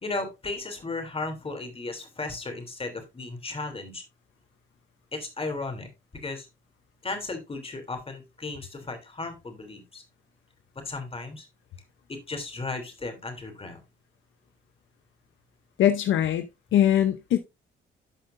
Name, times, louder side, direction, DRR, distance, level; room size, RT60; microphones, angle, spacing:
voice 1, 0.0-4.0 5.1-6.5 7.0-10.0 10.8-11.5 12.1-13.8, left 3 dB, 30° left, 3.2 m, -35 dB
voice 2, 15.8-16.4 16.7-17.4, left 11 dB, 75° left, 0.8 m, -21 dB
12.0 x 5.7 x 2.6 m
cardioid pair, 90°, 20 cm